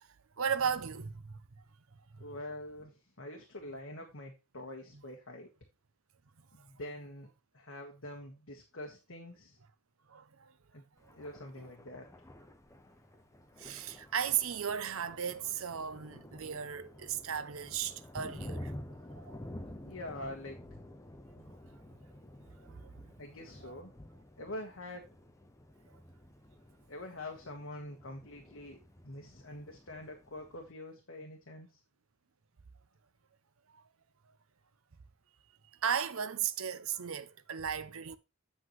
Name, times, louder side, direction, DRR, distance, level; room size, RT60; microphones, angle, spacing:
voice 1, 0.4-1.3 10.1-10.5 13.6-18.7 19.2-19.4 22.6-22.9 23.6-23.7 35.8-38.2, right 8 dB, 65° right, 0.7 m, -35 dB
voice 2, 2.2-5.5 6.5-7.3 7.5-9.6 10.7-10.9 11.1-12.1 19.8-20.6 23.2-23.9 24.4-25.1 26.9-31.8, left 1 dB, 65° left, 1.5 m, -45 dB
Thunder, 11.0-30.7, left 1 dB, 15° left, 0.7 m, -50 dB
8.0 x 7.8 x 3.1 m
head